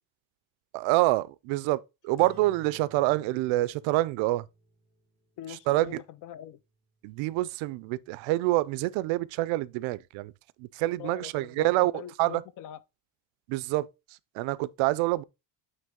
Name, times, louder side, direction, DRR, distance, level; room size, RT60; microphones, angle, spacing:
voice 1, 0.7-4.4 5.7-6.0 7.0-10.3 10.6-11.9 12.2-12.4 13.5-13.9 14.4-15.2, right 18 dB, 80° right, 0.5 m, -26 dB
sound 1, 2.2-7.0, equal, 20° left, 1.1 m, -56 dB
voice 2, 5.4-6.6 11.0-12.8, left 11 dB, 45° left, 0.4 m, -43 dB
9.1 x 3.2 x 3.6 m
cardioid pair, 170°, 46 cm